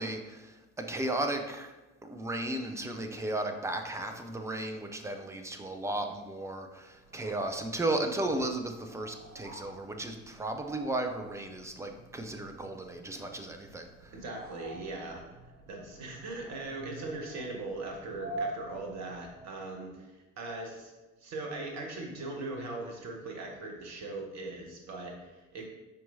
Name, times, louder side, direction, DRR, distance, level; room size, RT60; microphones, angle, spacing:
voice 1, 0.0-1.7 2.0-14.2, right 2 dB, 5° right, 5 dB, 0.7 m, -35 dB
sound 1, 7.0-19.6, right 2 dB, 85° right, 1.4 m, -46 dB
voice 2, 14.1-15.2 15.7-20.9 21.2-25.7, right 2 dB, 45° right, 1 dB, 1.6 m, -40 dB
11.0 x 4.6 x 2.7 m, 1.1 s
figure-of-eight pair, 60°, 38 cm